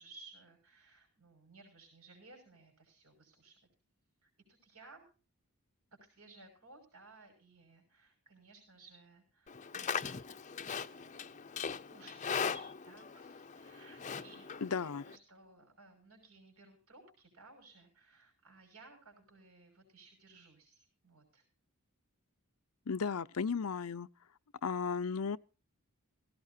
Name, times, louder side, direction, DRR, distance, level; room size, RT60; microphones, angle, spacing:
voice 1, 0.0-3.6 4.2-5.1 5.9-10.1 10.5-11.2 11.9-21.4, right 3 dB, 80° right, 6.1 m, -59 dB
Livestock farm animals working animals, 9.5-15.2, left 6 dB, 35° left, 0.6 m, -40 dB
voice 2, 14.6-15.0 22.9-24.1 24.6-25.4, left 5 dB, 75° left, 0.6 m, -35 dB
17.5 x 16.5 x 2.7 m
head